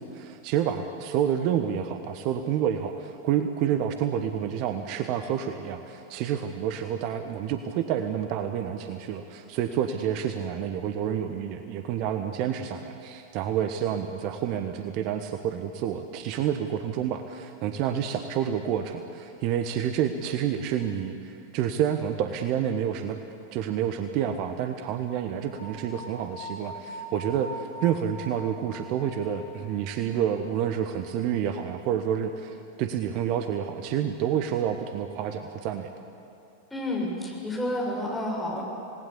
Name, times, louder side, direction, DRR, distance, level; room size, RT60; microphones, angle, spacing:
voice 1, 0.0-23.2 23.5-35.9, right 9 dB, 45° right, 8 dB, 1.2 m, -29 dB
sound 1, 25.4-30.5, equal, 80° left, 7.9 m, -42 dB
voice 2, 36.7-38.6, left 1 dB, 5° left, -2 dB, 6.7 m, -30 dB
27.5 x 19.0 x 8.4 m, 2.9 s
figure-of-eight pair, 90°, 0 cm